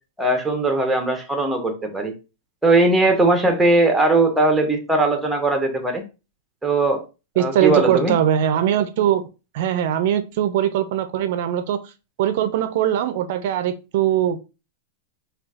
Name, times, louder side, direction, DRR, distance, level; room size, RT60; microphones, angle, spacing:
voice 1, 0.2-2.1 2.6-6.0 6.6-7.0 7.4-8.1, right 2 dB, 5° right, 4 dB, 0.6 m, -19 dB
voice 2, 7.4-9.2 9.5-11.9 12.2-14.4, right 10 dB, 60° right, 9 dB, 0.4 m, -21 dB
3.9 x 2.3 x 2.4 m, 0.30 s
supercardioid pair, 145°, 0 cm